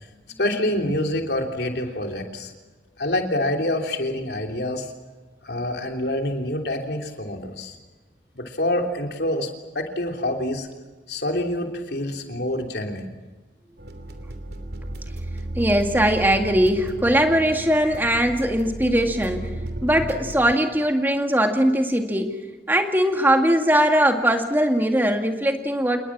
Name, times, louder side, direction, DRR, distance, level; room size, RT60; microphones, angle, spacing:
voice 1, 0.4-2.5 3.0-4.9 5.4-7.7 8.3-9.5 9.7-10.7 11.1-13.2, left 1 dB, 65° left, 3 dB, 3.2 m, -26 dB
sound 1, 13.8-20.5, right 1 dB, 60° right, 2.9 m, -34 dB
voice 2, 15.6-19.5 19.8-22.3 22.7-26.0, right 1 dB, 10° right, 5 dB, 2.1 m, -20 dB
27.5 x 21.0 x 7.4 m, 1.3 s
head